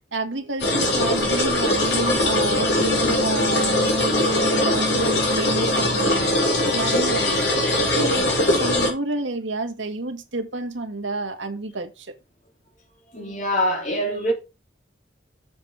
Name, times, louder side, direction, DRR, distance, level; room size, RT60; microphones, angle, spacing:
voice 1, 0.1-7.6 7.9-12.1, right 3 dB, 85° right, 1.8 m, -30 dB
sound 1, 0.6-8.9, left 1 dB, 65° left, 4.2 m, -21 dB
sound 2, 1.6-7.8, left 2 dB, 65° right, 2.0 m, -33 dB
voice 2, 13.1-14.3, equal, 40° left, 3.2 m, -24 dB
7.4 x 7.3 x 4.9 m
head